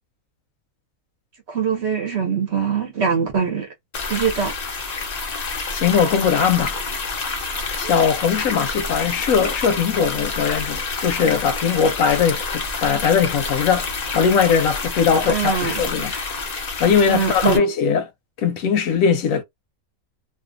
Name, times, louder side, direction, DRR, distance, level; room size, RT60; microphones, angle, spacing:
voice 1, 1.5-3.7 4.1-4.5 7.8-7.9 15.1-16.3 17.1-17.6, right 6 dB, 55° right, 0.9 m, -23 dB
sound 1, 3.9-17.6, left 4 dB, 55° left, 0.4 m, -28 dB
voice 2, 5.7-6.8 7.8-13.9 14.1-16.1 16.8-18.0 18.4-19.4, left 6 dB, 70° left, 0.9 m, -20 dB
2.5 x 2.4 x 2.5 m
omnidirectional pair, 1.5 m